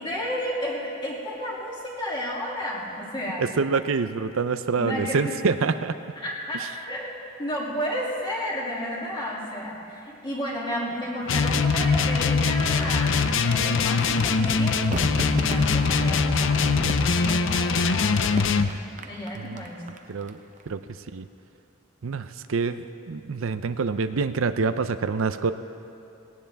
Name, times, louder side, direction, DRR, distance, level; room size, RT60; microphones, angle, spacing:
voice 1, 0.0-3.4 4.8-5.3 6.2-18.8 19.0-19.8, equal, 20° left, -5 dB, 2.7 m, -32 dB
voice 2, 3.4-5.9 19.3-19.6 20.1-20.4 20.7-20.8 21.1-21.2 22.0-25.5, right 4 dB, 75° right, 10 dB, 0.5 m, -26 dB
sound 1, 11.3-18.7, left 4 dB, 60° left, 0.5 m, -22 dB
Crowd / Fireworks, 14.9-20.3 20.6-20.7, right 2 dB, 35° right, 0.7 m, -36 dB
19.0 x 17.5 x 3.5 m, 2.7 s
head